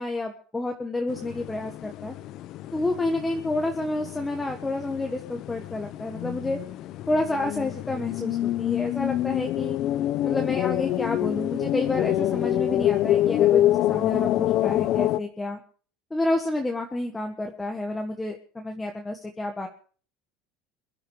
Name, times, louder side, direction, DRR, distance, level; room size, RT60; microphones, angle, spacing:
voice 1, 0.0-2.1 2.7-6.6 7.1-9.8 10.2-15.6 16.1-19.7, left 2 dB, 10° left, 3 dB, 1.4 m, -29 dB
sound 1, 1.1-15.2, left 13 dB, 45° left, 0.7 m, -26 dB
22.5 x 11.5 x 4.9 m, 0.43 s
cardioid pair, 155°, 0 cm